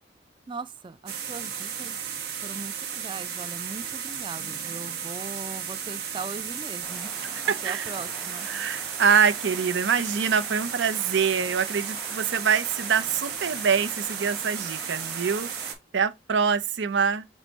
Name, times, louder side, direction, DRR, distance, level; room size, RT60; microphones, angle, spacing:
voice 1, 0.5-2.0 2.4-7.1 7.4-8.5, right 4 dB, 25° right, 0.4 m, -39 dB
sound 1, 1.1-15.7, right 8 dB, 60° right, 1.0 m, -34 dB
sound 2, 6.8-15.8, equal, ahead, 1.0 m, -44 dB
voice 2, 8.5-15.5 15.9-17.3, right 6 dB, 80° right, 0.5 m, -25 dB
6.1 x 2.2 x 4.0 m
head